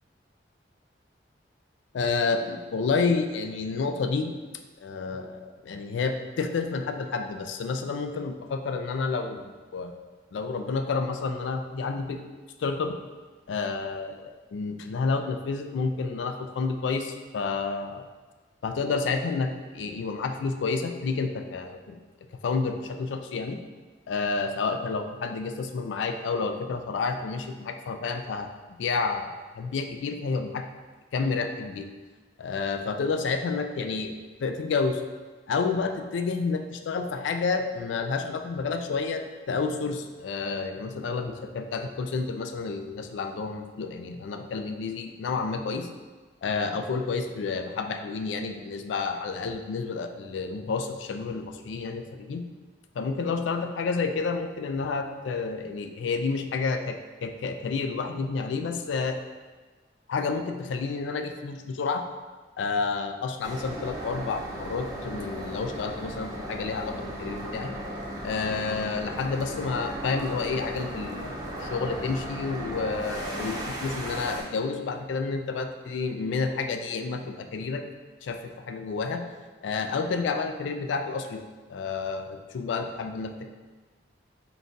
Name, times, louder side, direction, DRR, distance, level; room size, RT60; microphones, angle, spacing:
voice 1, 1.9-4.3 4.8-9.9 10.3-12.2 12.6-13.0 13.5-18.1 18.6-22.0 22.4-23.6 24.1-30.7 31.1-31.9 32.4-35.0 35.5-45.9 46.4-52.5 53.0-59.2 60.1-62.0 62.6-67.7 68.2-71.3 71.6-77.8 78.2-79.2 79.6-81.4 81.7-83.5, left 4 dB, 85° left, 6 dB, 0.3 m, -30 dB
sound 1, 63.4-74.4, right 1 dB, 20° right, 0.6 m, -36 dB
3.8 x 2.3 x 3.7 m, 1.4 s
head